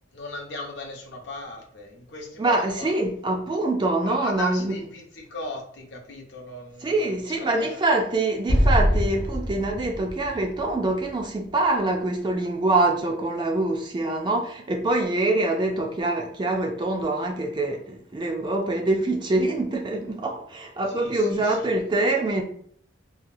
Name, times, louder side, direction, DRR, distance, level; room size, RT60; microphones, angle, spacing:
voice 1, 0.1-3.0 4.0-6.9 7.3-7.8 20.9-21.7, left 2 dB, 60° left, 0.7 m, -38 dB
voice 2, 2.4-4.7 6.8-22.4, right 2 dB, 25° right, 0.3 m, -25 dB
Explosion, 8.5-11.8, equal, 90° right, 1.2 m, -24 dB
2.8 x 2.2 x 2.6 m
head